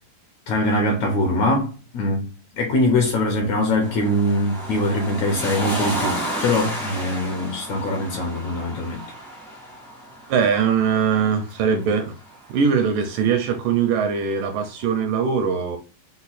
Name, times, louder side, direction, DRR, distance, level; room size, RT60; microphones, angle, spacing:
voice 1, 0.5-2.3 2.6-9.0, left 1 dB, 75° left, 1.8 m, -22 dB
sound 1, 3.8-12.9 14.1-14.2, right 1 dB, 5° left, 0.3 m, -32 dB
voice 2, 10.3-12.1 12.5-15.8, right 6 dB, 80° right, 2.1 m, -21 dB
5.7 x 2.2 x 4.0 m
omnidirectional pair, 4.1 m